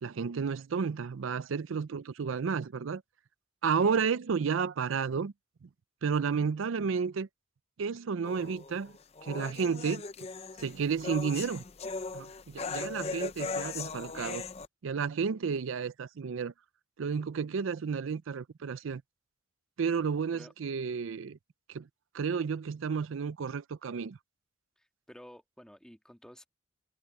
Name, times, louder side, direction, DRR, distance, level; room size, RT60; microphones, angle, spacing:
voice 1, 0.0-3.0 3.6-5.3 5.6-5.7 6.0-7.3 7.8-8.9 9.2-10.0 10.6-11.6 12.1-14.4 14.8-16.5 17.0-19.0 19.8-21.4 21.7-21.9 22.1-24.2, right 6 dB, 85° right, 0.5 m, -32 dB
sound 1, 8.2-14.7, left 4 dB, 30° left, 0.6 m, -39 dB
voice 2, 24.8-26.5, equal, 5° left, 1.9 m, -52 dB
head